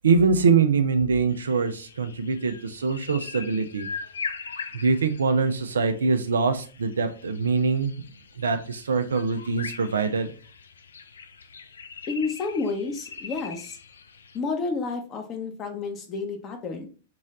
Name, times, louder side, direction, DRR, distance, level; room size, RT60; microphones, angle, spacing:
voice 1, 0.0-3.9 4.8-7.9 8.4-10.3, right 4 dB, 70° right, 8 dB, 0.5 m, -23 dB
sound 1, 1.3-14.4, left 5 dB, 70° left, 0.5 m, -41 dB
voice 2, 12.1-13.8 14.3-16.9, left 4 dB, 30° left, 4 dB, 1.1 m, -30 dB
3.8 x 3.1 x 3.8 m, 0.37 s
figure-of-eight pair, 100°, 0 cm